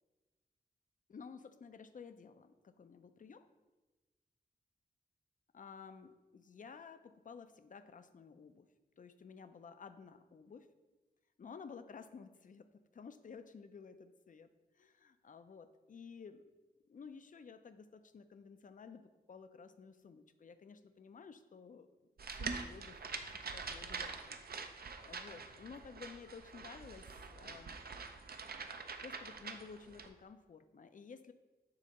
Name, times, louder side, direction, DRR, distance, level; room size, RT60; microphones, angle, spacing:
voice 1, 1.1-3.5 5.5-8.7 9.0-10.7 11.4-14.5 14.7-16.4 16.9-21.9 22.3-23.0 23.3-27.8 29.0-31.3, left 5 dB, 50° left, 10 dB, 0.4 m, -53 dB
sound 1, 22.2-30.1, right 4 dB, 65° right, 0.5 m, -45 dB
7.6 x 2.8 x 5.2 m, 1.2 s
wide cardioid pair, 105°, 17 cm